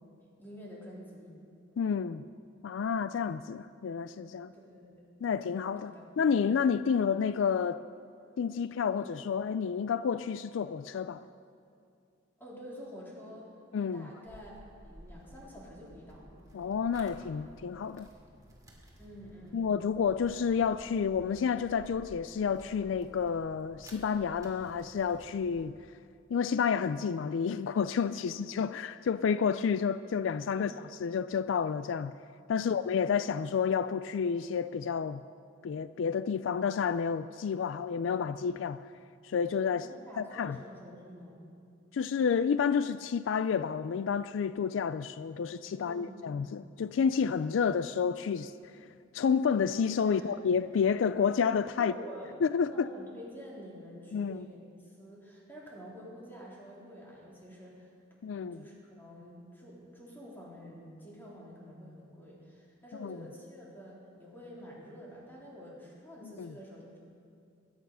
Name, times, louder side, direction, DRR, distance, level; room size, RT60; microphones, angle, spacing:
voice 1, 0.4-1.3 2.0-2.2 4.5-5.1 5.8-6.1 12.4-13.5 13.9-14.5 14.8-16.3 19.0-19.7 28.2-28.5 30.6-30.8 32.6-32.9 39.7-41.4 45.7-46.6 50.0-50.4 51.8-52.3 52.7-57.9 58.3-67.0, equal, 10° left, 3.7 m, -48 dB
voice 2, 1.8-2.2 2.6-4.5 5.2-7.8 8.4-11.3 13.7-14.1 16.5-18.1 19.5-25.7 26.3-30.7 31.0-32.1 32.5-35.2 35.6-38.8 39.2-39.9 40.2-40.6 41.9-48.5 49.1-51.9 52.4-52.9 54.1-54.5 58.2-58.6 63.0-63.2 66.2-66.5, left 6 dB, 75° left, 0.4 m, -30 dB
sound 1, 14.2-25.7, equal, 20° right, 2.5 m, -54 dB
22.5 x 9.6 x 5.6 m
head